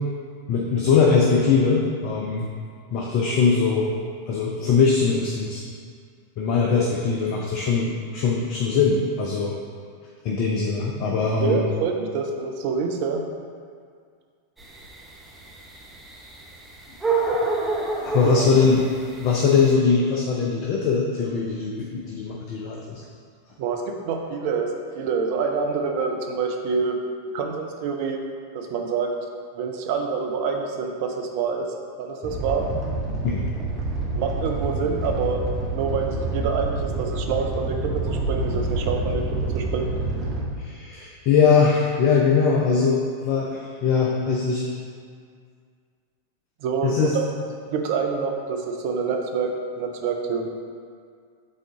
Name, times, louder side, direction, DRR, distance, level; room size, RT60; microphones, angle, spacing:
voice 1, 0.5-2.5 2.9-3.9 4.3-5.6 6.4-9.6 10.2-11.6 17.4-17.5 18.0-18.8 19.2-23.0 33.2-33.4 40.6-44.6 46.8-47.2, left 5 dB, 40° left, -2 dB, 0.6 m, -21 dB
voice 2, 11.4-13.2 18.2-18.5 23.6-27.0 27.3-28.2 28.5-29.1 29.6-31.7 32.0-32.7 34.1-39.9 46.6-47.3 47.7-50.5, right 5 dB, 50° right, 3 dB, 0.7 m, -26 dB
sound 1, 14.6-19.7, right 3 dB, 10° right, 0.9 m, -27 dB
Animal, 32.2-40.4, right 2 dB, 25° right, 1.3 m, -27 dB
7.5 x 3.8 x 3.7 m, 2.1 s
figure-of-eight pair, 90°, 0 cm